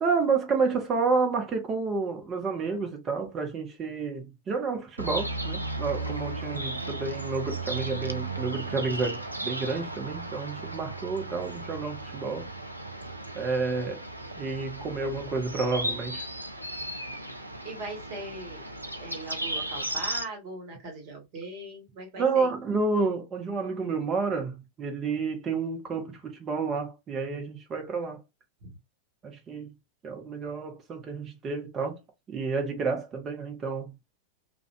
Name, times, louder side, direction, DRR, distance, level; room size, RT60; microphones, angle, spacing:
voice 1, 0.0-12.5 13.3-14.0 14.4-16.2 22.2-28.2 29.2-29.7 30.0-32.0 32.3-34.0, right 4 dB, 25° right, 0.7 m, -30 dB
sound 1, 5.0-20.2, right 2 dB, 85° right, 0.3 m, -35 dB
voice 2, 17.6-18.6 19.0-22.5 28.6-28.8, right 2 dB, 45° right, 1.4 m, -40 dB
2.4 x 2.2 x 2.4 m
figure-of-eight pair, 90°, 0 cm